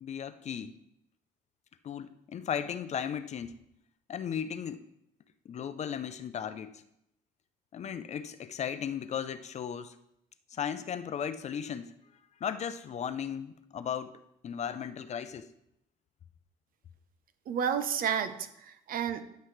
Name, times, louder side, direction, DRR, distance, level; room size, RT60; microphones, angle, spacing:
voice 1, 0.0-0.7 1.8-3.5 4.1-4.9 5.5-6.8 7.7-10.0 10.5-11.9 12.4-14.2 14.4-15.5, left 8 dB, 40° left, 12 dB, 0.6 m, -36 dB
voice 2, 17.5-19.2, right 8 dB, 55° right, 10 dB, 0.8 m, -31 dB
10.5 x 7.7 x 3.2 m, 0.78 s
cardioid pair, 110°, 17 cm